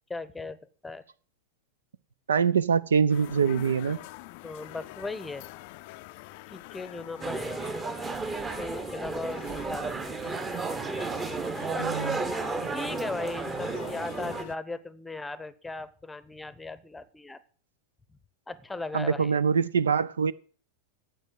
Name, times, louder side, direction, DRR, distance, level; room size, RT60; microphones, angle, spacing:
voice 1, 0.1-0.6 0.8-1.0 4.4-5.4 6.5-8.2 8.6-10.3 11.7-12.2 12.7-17.4 18.5-19.4, left 3 dB, 10° left, 17 dB, 0.8 m, -38 dB
voice 2, 2.3-4.0 11.8-12.2 18.9-20.3, right 6 dB, 70° right, 19 dB, 0.4 m, -24 dB
sound 1, 3.1-14.6, left 19 dB, 45° left, 0.4 m, -45 dB
sound 2, 7.2-14.4, right 4 dB, 15° right, 1.0 m, -33 dB
9.1 x 8.0 x 7.7 m, 0.43 s
figure-of-eight pair, 90°, 0 cm